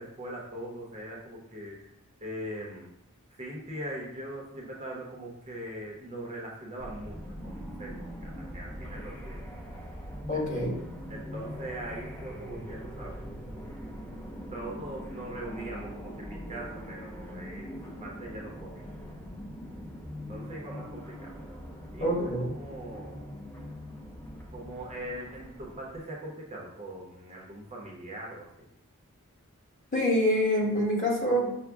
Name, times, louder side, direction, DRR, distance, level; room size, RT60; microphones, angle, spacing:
voice 1, 0.0-1.8 2.2-2.9 3.4-9.4 10.3-10.5 11.1-13.2 14.5-18.9 20.3-21.5 21.9-23.2 24.5-28.4, right 1 dB, 30° right, -2 dB, 0.7 m, -41 dB
sound 1, 6.8-26.0, equal, 10° left, 0.5 m, -42 dB
voice 2, 10.3-10.7 22.0-22.5 29.9-31.6, equal, 35° left, -4 dB, 1.3 m, -26 dB
6.0 x 2.1 x 3.5 m, 0.83 s
head